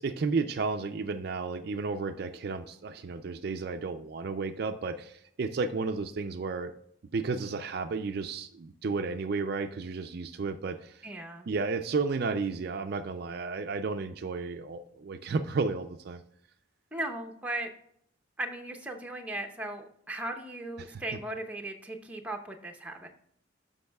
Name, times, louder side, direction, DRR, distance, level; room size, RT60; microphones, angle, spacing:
voice 1, 0.0-6.7 7.1-11.1 11.5-16.2 20.8-21.0, right 4 dB, 50° right, 8 dB, 0.4 m, -32 dB
voice 2, 11.0-11.5 16.9-17.7 18.4-23.1, right 1 dB, 5° right, 3 dB, 0.7 m, -37 dB
11.5 x 5.4 x 2.3 m, 0.71 s
head